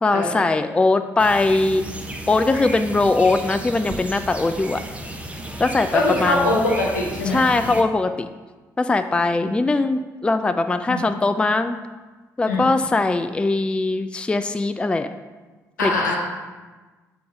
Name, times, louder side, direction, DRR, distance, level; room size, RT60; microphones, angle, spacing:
voice 1, 0.0-1.8 2.3-4.8 5.6-6.5 7.2-8.3 8.8-11.8 12.4-15.1 15.8-15.9, left 3 dB, 10° left, 10 dB, 0.3 m, -21 dB
sound 1, 1.2-7.8, right 1 dB, 15° right, 0.8 m, -34 dB
voice 2, 5.9-7.4 10.9-11.0 12.5-12.7 15.8-16.2, left 2 dB, 80° left, -3 dB, 1.1 m, -22 dB
6.9 x 3.8 x 4.9 m, 1.3 s
figure-of-eight pair, 45°, 9 cm